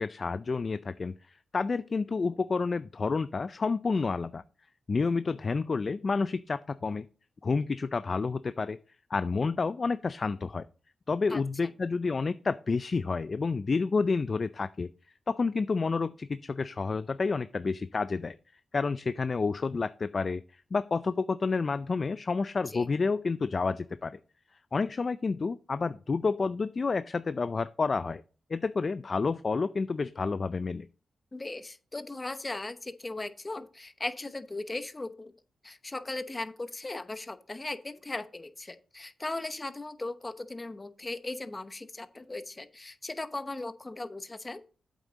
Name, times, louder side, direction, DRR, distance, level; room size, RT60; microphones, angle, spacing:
voice 1, 0.0-4.4 4.9-7.0 7.4-8.8 9.1-10.7 11.1-14.9 15.3-18.4 18.7-24.2 24.7-28.2 28.5-30.9, left 4 dB, 40° left, 13 dB, 0.4 m, -29 dB
voice 2, 31.3-35.3 35.6-44.6, left 2 dB, 25° left, 12 dB, 0.8 m, -38 dB
8.2 x 7.5 x 4.0 m, 0.37 s
cardioid pair, 85°, 0 cm